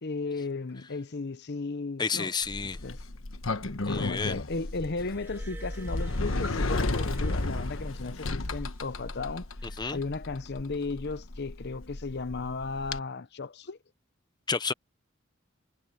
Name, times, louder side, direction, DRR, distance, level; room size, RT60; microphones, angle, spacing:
voice 1, 0.0-2.3 2.8-3.0 3.8-13.8, left 3 dB, 55° left, 0.8 m, -35 dB
voice 2, 2.0-2.8 3.8-4.4 9.8-10.0 14.5-14.7, left 5 dB, 20° left, 0.7 m, -30 dB
Sliding door, 2.4-13.0, left 2 dB, 80° left, 1.3 m, -33 dB
Glass, 5.0-8.6 9.6-9.8, right 1 dB, 10° right, 1.2 m, -45 dB
head